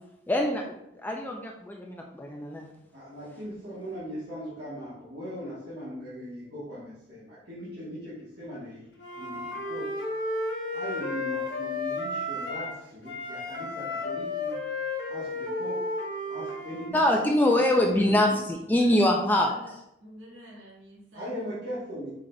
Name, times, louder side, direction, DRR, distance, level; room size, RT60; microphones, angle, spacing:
voice 1, 0.3-0.6 1.0-2.7 16.9-19.5, left 1 dB, 10° left, 1 dB, 0.3 m, -24 dB
voice 2, 2.9-8.8 9.1-10.0 10.7-14.6 15.1-15.9 16.3-18.4 21.1-22.1, equal, 60° right, -10 dB, 1.3 m, -39 dB
Wind instrument woodwind instrument, 9.0-12.8 13.1-16.9, left 2 dB, 65° left, 0.8 m, -33 dB
voice 3, 18.6-19.7 20.0-21.5, equal, 90° right, -4 dB, 1.3 m, -48 dB
4.8 x 3.8 x 2.2 m, 0.80 s
head